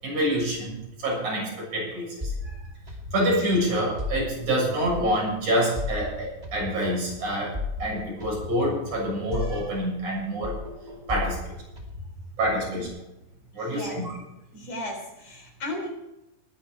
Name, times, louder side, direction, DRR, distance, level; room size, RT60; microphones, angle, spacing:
voice 1, 0.0-2.5 3.1-7.5 7.8-10.6 11.1-11.5 12.4-12.9 13.6-14.1, equal, 80° right, -3 dB, 8.7 m, -27 dB
sound 1, 2.2-5.3 5.8-10.2 10.4-12.9, left 2 dB, 15° right, 2.5 m, -36 dB
voice 2, 14.5-15.9, left 1 dB, 55° left, 2 dB, 5.1 m, -35 dB
21.0 x 10.5 x 4.7 m, 0.94 s
omnidirectional pair, 3.5 m